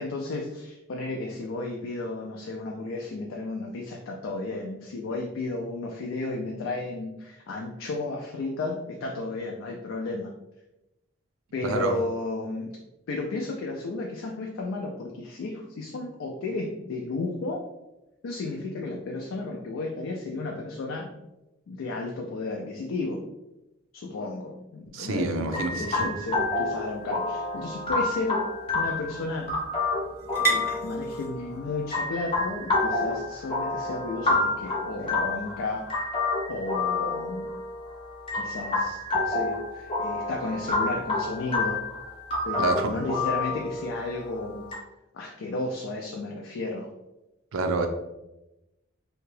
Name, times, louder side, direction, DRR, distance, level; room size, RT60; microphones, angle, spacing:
voice 1, 0.0-10.3 11.5-12.7 13.1-17.7 18.2-21.1 21.7-23.2 23.9-28.4 28.7-29.5 30.5-36.0 36.5-37.5 38.3-41.8 42.4-44.7 45.1-46.9, left 2 dB, 75° left, 1 dB, 0.3 m, -33 dB
voice 2, 11.6-11.9 24.9-26.1 42.6-42.9 47.5-47.9, right 3 dB, 85° right, 6 dB, 0.4 m, -27 dB
sound 1, 25.5-44.7, left 3 dB, 25° left, 0.6 m, -29 dB
sound 2, 27.0-34.7, right 4 dB, 15° right, 0.6 m, -37 dB
2.8 x 2.2 x 3.1 m, 0.96 s
head